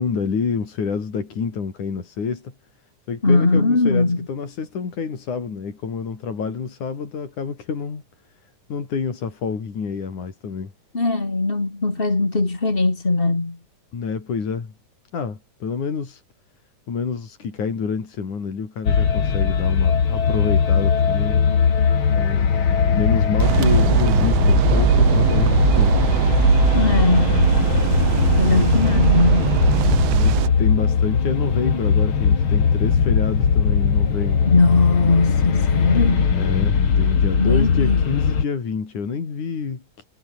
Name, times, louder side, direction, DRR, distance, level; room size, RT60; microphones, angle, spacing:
voice 1, 0.0-2.5 3.1-8.0 8.4-10.7 13.9-14.7 15.1-16.2 16.9-21.4 22.2-22.5 23.0-25.9 28.4-28.7 30.1-34.8 36.3-40.0, left 5 dB, 85° left, 5.6 m, -28 dB
voice 2, 3.2-4.2 10.9-13.6 26.7-27.5 28.4-29.6 34.5-36.3 37.4-38.0, left 3 dB, 20° left, 2.7 m, -20 dB
sound 1, 18.9-38.4, left 6 dB, 45° left, 2.9 m, -19 dB
sound 2, 23.4-30.5, right 16 dB, 70° right, 1.6 m, -19 dB
omnidirectional pair, 3.4 m